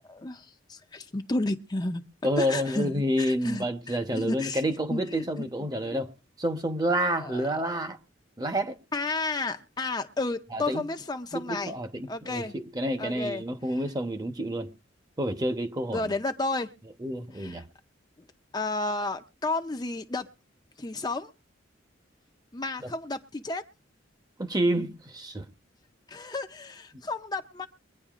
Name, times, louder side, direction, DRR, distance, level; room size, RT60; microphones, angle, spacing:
voice 1, 0.1-2.0 2.4-4.6 4.9-5.5 5.9-6.0 7.2-7.5 8.9-11.7 12.1-12.5 13.0-13.4 15.9-16.7 17.4-17.6 18.5-20.3 20.8-21.3 22.5-23.6 26.1-27.7, left 2 dB, 20° left, 0.6 m, -32 dB
voice 2, 2.2-6.1 6.4-8.0 8.4-8.8 10.5-10.8 11.3-14.7 15.2-16.2 17.0-17.7 22.8-22.9 24.4-25.5, right 1 dB, 20° right, 0.9 m, -29 dB
23.0 x 9.7 x 2.5 m
head